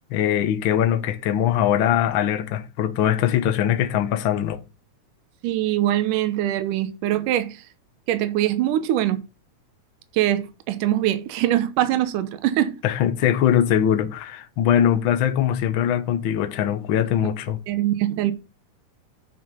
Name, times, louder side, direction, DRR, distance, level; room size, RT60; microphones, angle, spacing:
voice 1, 0.1-4.6 12.8-17.6, left 10 dB, 80° left, 1.1 m, -21 dB
voice 2, 5.4-7.6 8.1-9.2 10.1-12.8 17.7-18.3, right 13 dB, 80° right, 2.5 m, -23 dB
8.7 x 6.2 x 5.5 m
omnidirectional pair, 3.7 m